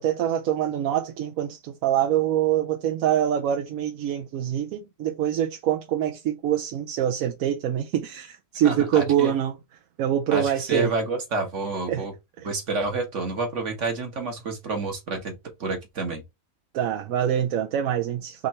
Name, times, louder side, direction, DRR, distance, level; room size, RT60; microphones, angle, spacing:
voice 1, 0.0-9.5 10.0-10.9 11.9-12.1 12.4-12.5 16.7-18.5, right 10 dB, 75° right, 1.0 m, -25 dB
voice 2, 8.6-9.3 10.3-12.1 12.4-15.3 15.6-16.2, right 3 dB, 55° right, 1.4 m, -28 dB
3.7 x 3.2 x 4.1 m
omnidirectional pair, 1.5 m